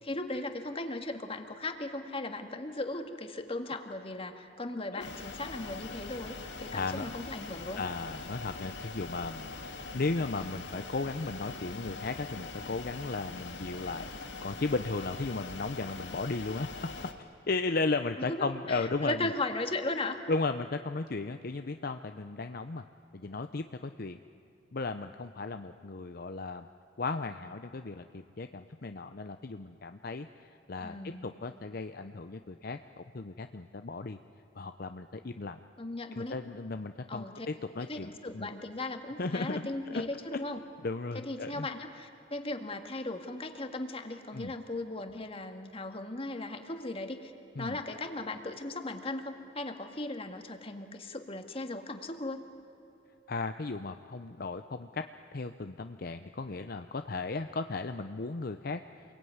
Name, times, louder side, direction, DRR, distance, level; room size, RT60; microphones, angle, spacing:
voice 1, 0.0-7.8 18.3-20.2 30.8-31.3 35.8-36.4 37.1-37.5 37.8-40.6 41.2-47.3 47.6-52.4, left 2 dB, 30° left, 6 dB, 1.9 m, -37 dB
sound 1, 5.0-17.1, left 3 dB, 80° left, 2.2 m, -43 dB
voice 2, 6.7-7.0 7.8-9.5 9.9-16.7 17.5-19.3 20.3-22.8 23.1-24.2 24.7-26.7 27.0-31.0 31.2-34.2 34.6-35.6 36.1-38.5 39.2-40.0 40.8-41.7 44.3-44.5 47.6-47.8 53.3-55.0 55.3-59.0, left 3 dB, 55° left, 8 dB, 0.7 m, -35 dB
28.0 x 22.0 x 9.5 m, 2.9 s
head